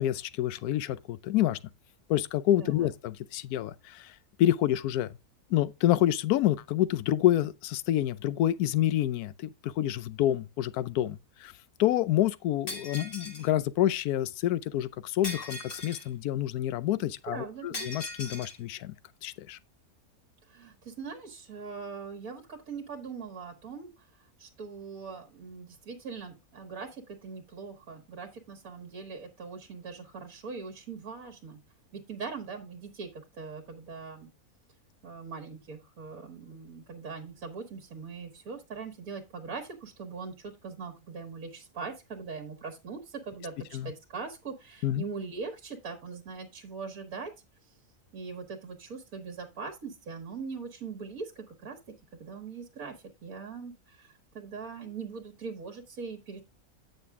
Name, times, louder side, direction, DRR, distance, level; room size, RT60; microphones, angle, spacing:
voice 1, 0.0-1.6 2.1-5.2 5.5-11.5 11.8-18.9 19.2-19.6 43.7-43.9 44.8-45.0, left 13 dB, 85° left, 1.1 m, -28 dB
voice 2, 2.6-2.9 17.3-17.9 20.5-31.6 31.9-34.3 35.0-47.3 47.7-47.8 48.1-51.8 52.2-56.4, right 5 dB, 70° right, 1.7 m, -41 dB
Shatter, 12.7-13.5 15.2-16.1 17.7-18.6, left 2 dB, 55° left, 2.4 m, -39 dB
8.8 x 6.6 x 3.5 m
omnidirectional pair, 1.6 m